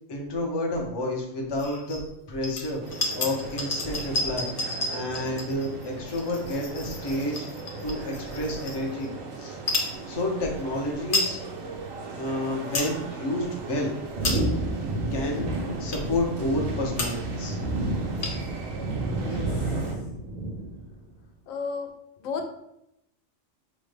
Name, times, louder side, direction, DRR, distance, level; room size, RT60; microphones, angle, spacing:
voice 1, 0.1-2.0 2.3-7.5 7.8-9.1 9.4-9.6 10.1-11.4 12.1-13.9 15.1-15.5 15.8-17.6, left 1 dB, 35° left, 0 dB, 0.4 m, -30 dB
sound 1, 1.5-2.0 2.4-9.1 9.6-9.9 10.6-10.7 10.9-11.3 11.8-11.9 12.4-12.9 13.4-13.6 14.0-14.7 15.3-15.4 15.9-16.2 16.7-16.8 16.9-17.4 17.6-17.7 17.9-18.6, left 2 dB, 50° left, 0.8 m, -32 dB
sound 2, 2.8-19.9, right 3 dB, 85° right, 1.1 m, -39 dB
sound 3, 14.1-20.9, right 2 dB, 45° right, 0.6 m, -30 dB
voice 2, 19.1-19.5 21.5-21.9 22.2-22.6, left 4 dB, 85° left, 5 dB, 1.0 m, -33 dB
4.9 x 2.1 x 3.3 m, 0.82 s
omnidirectional pair, 1.3 m